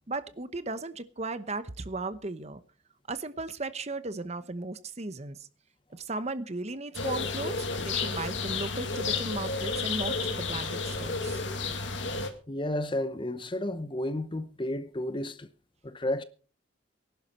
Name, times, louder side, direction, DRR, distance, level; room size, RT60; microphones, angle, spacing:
voice 1, 0.1-2.6 3.1-5.5 5.9-11.4, right 3 dB, 35° right, 0.9 m, -36 dB
sound 1, 6.9-12.3, left 4 dB, 70° left, 2.2 m, -31 dB
voice 2, 12.5-15.5 15.8-16.2, left 1 dB, 25° left, 0.8 m, -32 dB
19.0 x 11.5 x 4.3 m
head